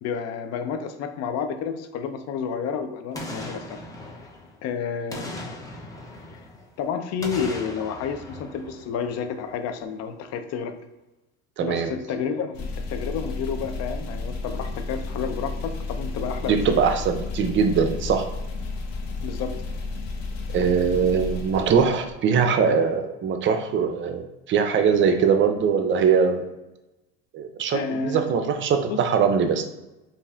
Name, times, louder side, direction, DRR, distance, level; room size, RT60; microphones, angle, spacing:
voice 1, 0.0-3.8 4.6-5.3 6.8-10.7 11.6-16.8 19.2-19.5 27.7-28.4 28.9-29.0, left 6 dB, 55° left, 8 dB, 0.6 m, -30 dB
Boom, 3.1-4.7 5.1-6.7 7.2-9.4 9.8-9.9, left 1 dB, 10° left, 0.7 m, -38 dB
voice 2, 11.6-11.9 16.4-18.3 20.5-26.4 27.3-29.6, right 6 dB, 40° right, 7 dB, 0.5 m, -22 dB
sound 1, 12.5-22.4, left 3 dB, 70° left, 0.9 m, -32 dB
5.2 x 2.6 x 2.4 m, 1.0 s
supercardioid pair, 95°, 31 cm